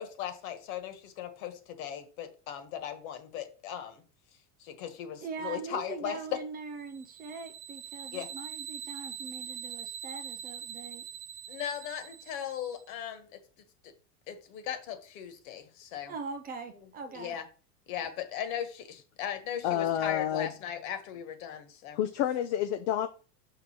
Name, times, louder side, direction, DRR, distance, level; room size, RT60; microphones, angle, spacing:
voice 1, 0.0-4.0 4.6-6.2 8.1-8.3 11.5-13.3 14.3-16.1 17.1-17.4 17.9-22.0, left 9 dB, 60° left, 1.6 m, -38 dB
voice 2, 5.2-11.1 16.1-17.4, right 5 dB, 20° right, 0.5 m, -41 dB
sound 1, 6.9-12.8, right 9 dB, 70° right, 0.9 m, -43 dB
voice 3, 19.6-20.5 21.9-23.1, left 10 dB, 45° left, 0.6 m, -29 dB
6.3 x 3.8 x 5.7 m
supercardioid pair, 160°, 46 cm